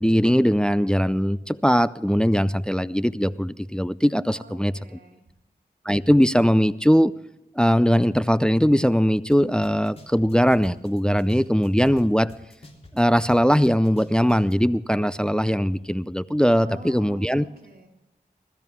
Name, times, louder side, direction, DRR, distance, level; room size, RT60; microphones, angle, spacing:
voice 1, 0.0-4.7 5.9-7.1 7.6-12.3 12.9-17.4, equal, 5° left, 15 dB, 0.4 m, -20 dB
voice 2, 4.3-5.2 16.6-17.9, right 3 dB, 65° right, -1 dB, 3.1 m, -45 dB
sound 1, 9.3-9.4 9.6-12.0 12.3-14.5, left 2 dB, 40° left, 3.4 m, -46 dB
21.0 x 13.0 x 3.6 m, 0.98 s
wide cardioid pair, 95°, 17 cm